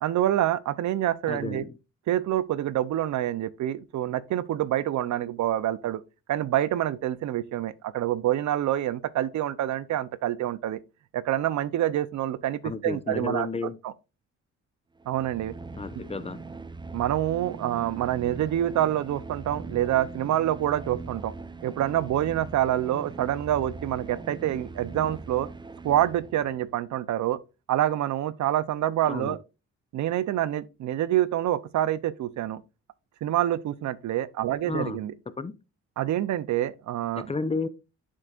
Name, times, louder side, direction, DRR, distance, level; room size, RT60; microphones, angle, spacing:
voice 1, 0.0-1.6 2.1-6.0 6.3-10.8 11.1-13.5 13.8-13.9 15.1-15.5 16.9-21.3 21.6-25.5 25.8-27.4 27.7-29.4 29.9-32.6 33.2-35.1 36.0-37.3, right 12 dB, 70° right, 0.7 m, -27 dB
voice 2, 1.3-1.7 12.6-13.8 15.7-16.4 29.0-29.4 34.7-35.0 35.4-35.5 37.2-37.7, left 4 dB, 20° left, 0.7 m, -32 dB
sound 1, 15.0-26.7, right 3 dB, 15° right, 0.7 m, -41 dB
7.6 x 6.4 x 2.4 m
cardioid pair, 90°, 30 cm